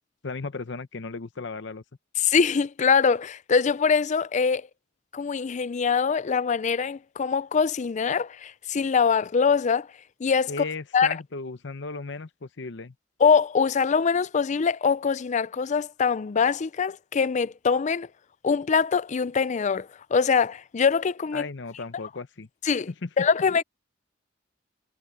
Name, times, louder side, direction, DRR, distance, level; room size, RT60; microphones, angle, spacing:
voice 1, 0.2-1.8 10.5-12.9 21.3-22.5 22.9-23.1, left 3 dB, 65° left, 0.8 m, -35 dB
voice 2, 2.2-4.7 5.1-9.9 10.2-10.5 10.9-11.1 13.2-18.1 18.4-21.4 22.6-22.9 23.2-23.6, left 5 dB, 40° left, 0.4 m, -23 dB
head